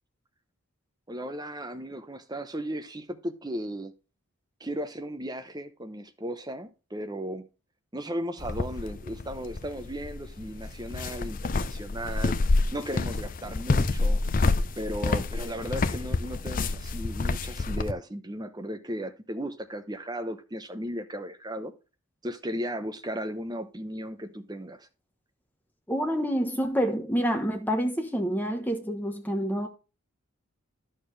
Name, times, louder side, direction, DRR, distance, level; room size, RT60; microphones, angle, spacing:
voice 1, 1.1-3.9 4.6-7.5 7.9-12.4 12.7-14.2 14.8-21.7 22.2-24.9, equal, 20° right, 0.8 m, -36 dB
sound 1, 8.4-17.9, left 3 dB, 40° left, 0.5 m, -28 dB
voice 2, 25.9-29.7, equal, 10° left, 1.1 m, -27 dB
11.0 x 6.6 x 3.3 m
head